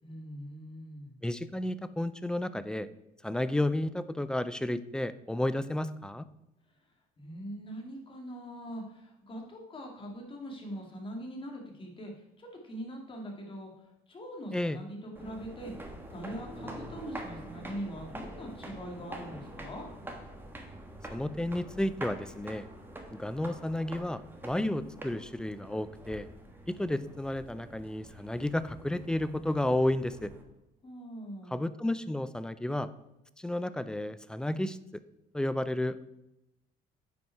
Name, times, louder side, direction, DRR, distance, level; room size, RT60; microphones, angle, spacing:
voice 1, 0.0-1.1 7.2-19.9 30.8-31.6, equal, 30° left, 1 dB, 2.1 m, -42 dB
voice 2, 1.2-2.9 3.2-6.3 14.5-14.8 21.1-22.7 23.2-26.3 26.7-30.3 31.5-32.9 33.4-35.0 35.3-36.1, left 1 dB, 5° left, 14 dB, 0.4 m, -32 dB
sound 1, 15.1-30.4, right 1 dB, 10° right, 1.3 m, -46 dB
9.2 x 5.3 x 4.6 m, 0.91 s
cardioid pair, 110°, 17 cm